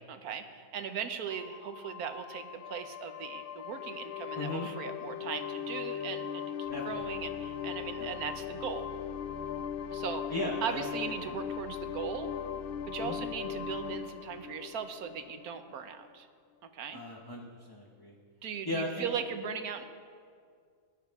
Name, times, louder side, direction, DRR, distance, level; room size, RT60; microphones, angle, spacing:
voice 1, 0.1-8.9 9.9-10.3 10.6-12.3 12.9-16.3 16.7-17.0 18.4-19.9, right 7 dB, 75° right, 8 dB, 1.3 m, -38 dB
sound 1, 1.3-15.7, left 8 dB, 80° left, 0.5 m, -39 dB
voice 2, 4.3-4.7 6.7-7.0 8.0-8.1 10.3-10.9 11.2-11.3 13.0-13.2 16.9-18.1 18.7-19.1, left 2 dB, 20° left, -1 dB, 0.8 m, -36 dB
19.0 x 11.0 x 3.6 m, 2.2 s
omnidirectional pair, 1.6 m